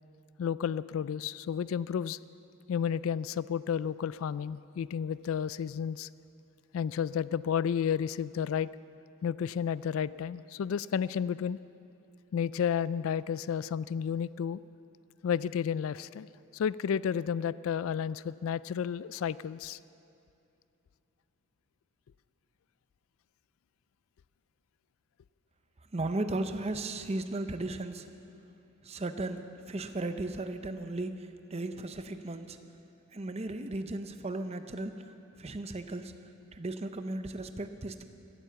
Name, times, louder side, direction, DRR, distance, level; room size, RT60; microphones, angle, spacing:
voice 1, 0.4-2.2 2.7-6.1 6.7-8.7 9.2-11.6 12.3-14.6 15.2-16.3 16.5-19.8, left 8 dB, 70° left, 18 dB, 0.3 m, -31 dB
voice 2, 25.9-28.1 28.8-32.6 33.1-35.1 35.4-36.1 36.5-38.0, right 2 dB, 30° right, 9 dB, 0.6 m, -36 dB
16.5 x 12.0 x 7.0 m, 2.7 s
head